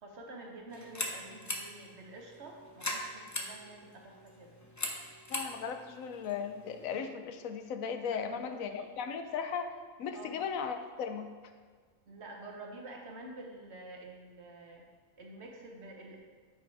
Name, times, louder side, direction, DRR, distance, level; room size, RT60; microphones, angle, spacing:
voice 1, 0.0-4.5 8.1-8.9 10.1-10.3 12.0-14.8 15.2-16.2, right 2 dB, 55° right, 1 dB, 1.3 m, -48 dB
sound 1, 0.7-7.0, left 1 dB, 20° left, 0.5 m, -41 dB
voice 2, 5.3-11.3, left 6 dB, 90° left, 8 dB, 1.1 m, -37 dB
8.8 x 5.0 x 4.7 m, 1.5 s
omnidirectional pair, 1.4 m